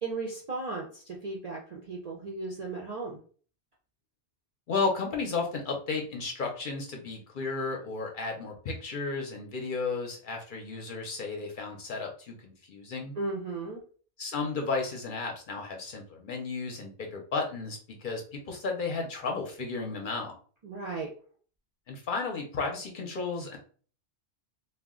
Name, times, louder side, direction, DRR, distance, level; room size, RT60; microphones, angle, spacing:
voice 1, 0.0-3.2 13.2-13.8 20.6-21.1, right 3 dB, 55° right, -1 dB, 0.4 m, -36 dB
voice 2, 4.7-13.2 14.2-20.3 21.9-23.6, left 4 dB, 55° left, 1 dB, 0.6 m, -33 dB
2.3 x 2.0 x 3.5 m, 0.42 s
omnidirectional pair, 1.2 m